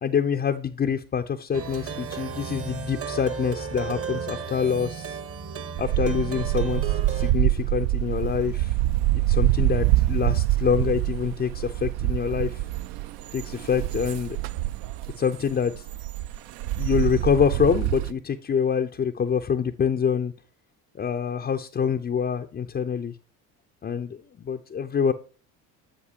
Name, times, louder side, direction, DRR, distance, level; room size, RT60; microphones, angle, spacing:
voice 1, 0.0-5.2 5.8-6.8 7.1-8.7 9.3-12.6 13.3-14.4 15.2-15.9 16.8-20.3 21.0-23.1 23.8-25.1, left 7 dB, 20° left, 4 dB, 0.5 m, -26 dB
Plucked string instrument, 1.5-7.3, right 6 dB, 30° right, 0.9 m, -34 dB
sound 1, 5.8-18.1, right 16 dB, 55° right, 0.5 m, -25 dB
7.8 x 7.6 x 2.8 m, 0.38 s
hypercardioid pair, 60°, 47 cm